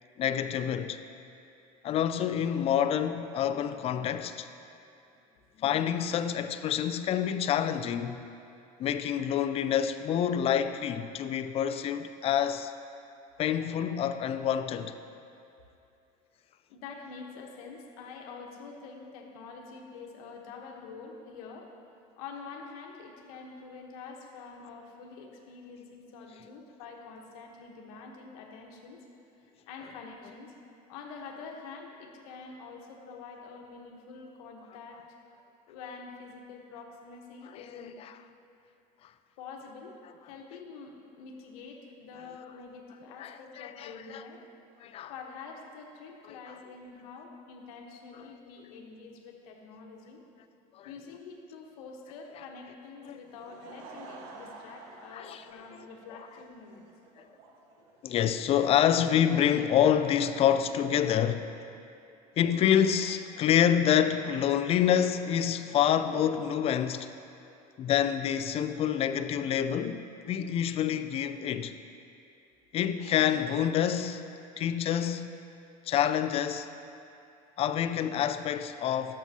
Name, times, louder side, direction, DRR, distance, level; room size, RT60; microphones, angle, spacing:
voice 1, 0.2-1.0 1.8-4.5 5.6-8.2 8.8-12.7 13.4-14.9 37.8-37.9 43.2-44.2 44.8-45.1 50.8-50.9 53.1-53.2 55.1-55.4 55.7-55.9 58.0-61.5 62.4-67.1 67.8-71.7 72.7-74.2 74.6-75.3 75.9-76.7 77.6-79.2, left 9 dB, 35° left, 10 dB, 0.4 m, -27 dB
voice 2, 16.7-21.7 22.2-29.0 29.4-30.5 30.9-35.2 35.7-37.9 39.4-39.9 40.2-44.4 45.1-50.2 50.8-56.9, left 4 dB, 80° left, 1 dB, 1.1 m, -46 dB
Laughter / Crowd, 53.1-60.1, right 3 dB, 65° right, 1.0 m, -51 dB
12.0 x 7.4 x 2.8 m, 2.7 s
supercardioid pair, 125°, 18 cm